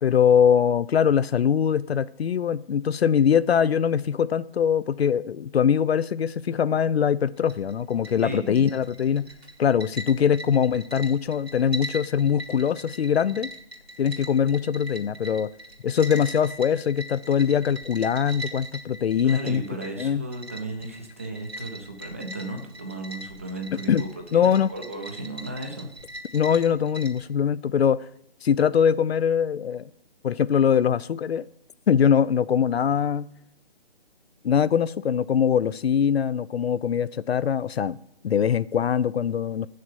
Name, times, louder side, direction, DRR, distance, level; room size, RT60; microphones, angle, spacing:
voice 1, 0.0-9.3 9.6-13.5 14.0-15.5 15.8-19.6 20.0-20.2 23.9-24.0 24.3-24.7 26.3-28.1 28.4-29.9 30.2-31.4 31.9-33.3 34.4-38.0 38.2-39.7, left 8 dB, 75° left, 0.5 m, -22 dB
sound 1, 7.4-27.3, right 1 dB, 85° right, 2.3 m, -41 dB
voice 2, 8.2-8.6 19.2-25.9, right 2 dB, 15° right, 0.5 m, -35 dB
8.1 x 6.5 x 6.8 m
figure-of-eight pair, 155°, 31 cm